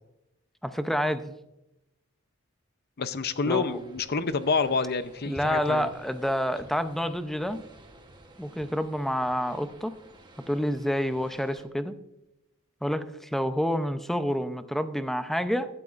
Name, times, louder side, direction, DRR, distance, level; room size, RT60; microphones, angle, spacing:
voice 1, 0.6-1.3 3.5-3.8 5.3-7.6 8.4-9.9 10.5-12.0 12.8-15.7, equal, ahead, 9 dB, 0.6 m, -28 dB
voice 2, 3.0-5.9, left 4 dB, 50° left, 12 dB, 0.6 m, -28 dB
sound 1, 3.3-11.7, right 1 dB, 20° right, 1.1 m, -51 dB
16.0 x 12.0 x 2.5 m, 0.90 s
head